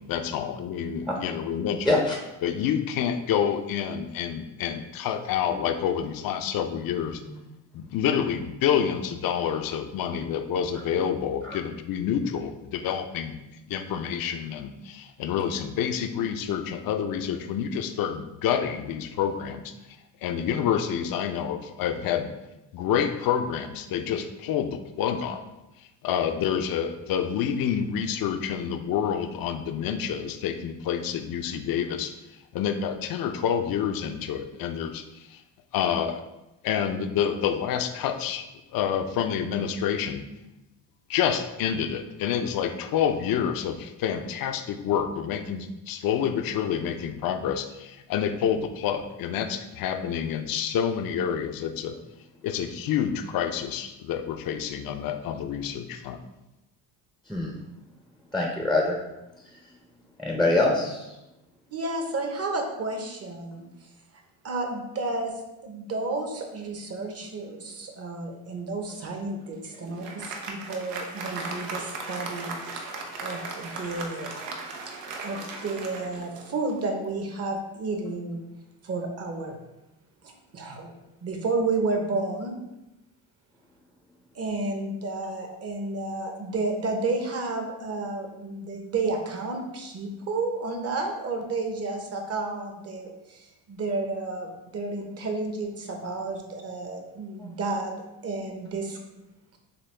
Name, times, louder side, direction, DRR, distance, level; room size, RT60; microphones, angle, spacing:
voice 1, 0.1-2.0 2.4-7.2 7.7-13.4 13.7-19.7 20.2-22.3 22.7-25.4 26.0-32.2 32.5-35.4 35.7-36.2 36.6-38.5 38.7-40.2 41.1-51.9 52.4-56.2, left 8 dB, 55° left, 7 dB, 0.6 m, -28 dB
voice 2, 1.8-2.1 7.3-7.4 11.4-11.6 57.3-57.5 58.3-59.0 60.2-61.1 97.4-97.5, left 2 dB, ahead, -1 dB, 0.6 m, -24 dB
voice 3, 61.7-63.6 64.4-65.3 65.6-72.6 73.2-74.3 75.2-78.4 78.8-79.6 80.2-80.9 81.2-82.6 84.3-97.9 98.2-99.0, right 3 dB, 35° right, 3 dB, 0.9 m, -31 dB
Applause, 69.4-77.0, right 3 dB, 90° right, 0.8 m, -37 dB
6.8 x 2.3 x 3.3 m, 0.96 s
cardioid pair, 100°, 41 cm